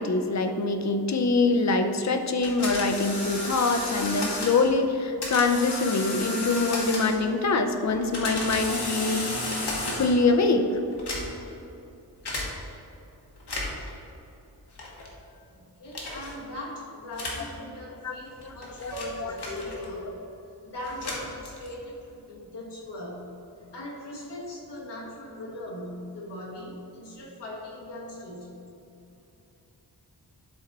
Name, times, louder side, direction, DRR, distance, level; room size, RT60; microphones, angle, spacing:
voice 1, 0.0-9.4 10.0-10.7 18.0-18.5 18.8-18.9 19.2-19.3, left 3 dB, 45° left, 6 dB, 0.6 m, -24 dB
sound 1, 2.4-4.7 5.2-7.3 7.9-10.3 10.9-11.5 12.3-12.5 13.4-13.9 14.8-15.1 15.9-16.3 17.1-17.5 18.3-20.0 20.8-21.8, left 2 dB, 75° left, 1.5 m, -33 dB
voice 2, 15.2-20.1 20.6-23.3 23.7-28.5, left 1 dB, 90° left, -4 dB, 1.8 m, -40 dB
Piano, 18.9-20.9, right 3 dB, 45° right, 1.2 m, -42 dB
11.0 x 4.0 x 4.1 m, 2.8 s
wide cardioid pair, 125°, 40 cm